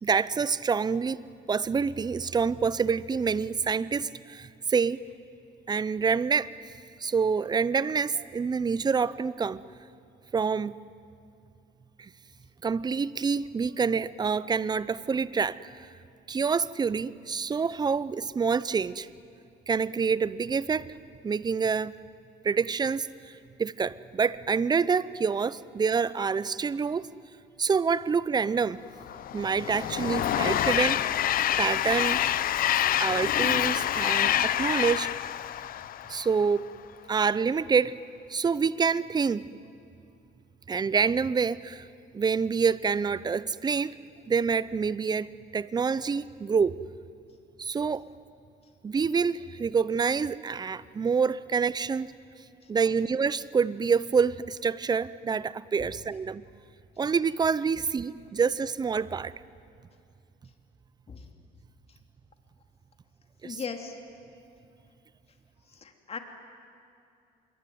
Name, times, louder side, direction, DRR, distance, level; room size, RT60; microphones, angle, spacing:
voice 1, 0.0-1.2 1.5-5.0 5.7-6.5 7.0-9.6 10.3-10.8 12.0-12.1 12.6-15.6 16.3-19.1 19.7-20.9 21.2-21.9 22.4-27.1 27.6-28.8 29.3-31.2 31.6-32.2 33.0-35.1 36.1-36.6 37.1-38.0 38.3-39.5 40.7-41.9 42.1-43.9 44.3-46.8 47.6-48.0 48.8-52.1 52.7-56.4 57.0-59.3 63.4-63.6, right 5 dB, 25° right, 18 dB, 0.7 m, -27 dB
Train, 29.0-36.5, left 11 dB, 60° left, 0.8 m, -27 dB
voice 2, 63.4-64.0 65.7-66.2, left 5 dB, 35° left, 5 dB, 3.0 m, -38 dB
26.0 x 22.0 x 9.5 m, 2.6 s
cardioid pair, 110°, 17 cm